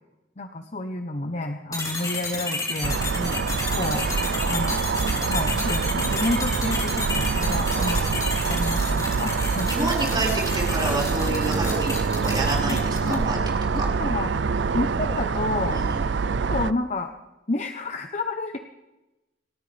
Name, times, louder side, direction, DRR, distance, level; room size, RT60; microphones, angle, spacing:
voice 1, 0.4-3.0 3.8-4.1 4.4-4.8 5.3-9.7 11.5-11.6 12.7-13.2 13.7-14.3 14.7-15.8 16.5-17.1 17.5-18.6, left 2 dB, 40° left, 6 dB, 0.9 m, -30 dB
sound 1, 1.7-13.3, left 3 dB, 20° left, 3.7 m, -32 dB
sound 2, 2.8-16.7, right 5 dB, 85° right, 0.5 m, -25 dB
voice 2, 9.6-13.9 15.7-16.1, right 2 dB, 25° right, -3 dB, 5.3 m, -29 dB
29.5 x 13.5 x 3.4 m, 1.0 s
head